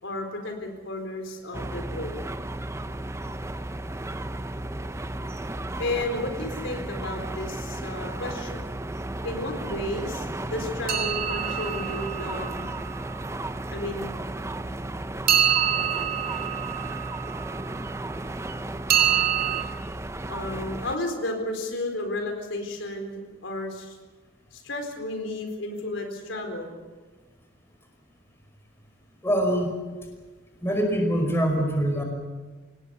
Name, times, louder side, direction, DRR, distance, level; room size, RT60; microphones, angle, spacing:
voice 1, 0.0-2.2 5.8-8.6 9.2-12.7 13.7-14.1 20.3-24.0 24.5-26.7, left 1 dB, 85° left, 4 dB, 4.2 m, -32 dB
sound 1, 1.5-21.0, right 1 dB, 15° right, 0.6 m, -34 dB
sound 2, 10.9-12.9 15.3-17.6 18.9-19.6, right 9 dB, 50° right, 3.0 m, -26 dB
voice 2, 29.2-29.7 30.6-32.0, equal, 15° left, 2 dB, 5.1 m, -24 dB
26.5 x 18.5 x 7.0 m, 1.3 s
head